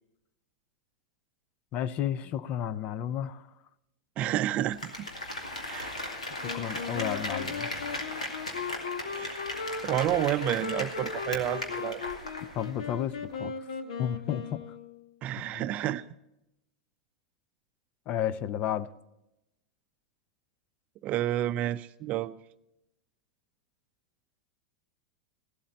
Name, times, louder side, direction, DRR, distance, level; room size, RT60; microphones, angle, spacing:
voice 1, 1.7-3.5 6.5-7.7 12.5-13.5 14.0-14.6 15.5-15.6 18.1-18.9, left 10 dB, 40° left, 16 dB, 0.6 m, -32 dB
voice 2, 4.2-4.9 5.7-5.9 9.1-9.4 9.8-12.0 15.2-16.0 21.0-22.3, right 13 dB, 40° right, 14 dB, 0.5 m, -30 dB
Applause, 4.6-12.8 13.1-13.2, left 1 dB, 85° left, 2.4 m, -37 dB
Wind instrument woodwind instrument, 6.4-15.2, left 5 dB, 70° left, 1.2 m, -38 dB
16.5 x 12.5 x 4.2 m, 0.89 s
figure-of-eight pair, 90°, 4 cm